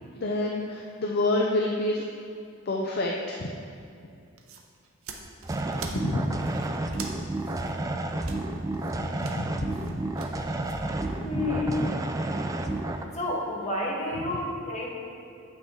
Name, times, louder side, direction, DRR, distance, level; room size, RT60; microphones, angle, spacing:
voice 1, 0.1-2.0 2.7-3.5 5.9-6.4 9.0-10.0 10.3-10.6, left 2 dB, 50° left, -1 dB, 0.5 m, -28 dB
sound 1, 4.3-10.8, right 5 dB, 75° right, 0.8 m, -44 dB
sound 2, 5.4-13.0, right 2 dB, 15° right, 0.3 m, -31 dB
voice 2, 11.2-11.9 12.5-12.7 13.1-14.9, left 1 dB, 30° left, -3 dB, 1.4 m, -30 dB
8.6 x 6.1 x 3.7 m, 2.4 s
head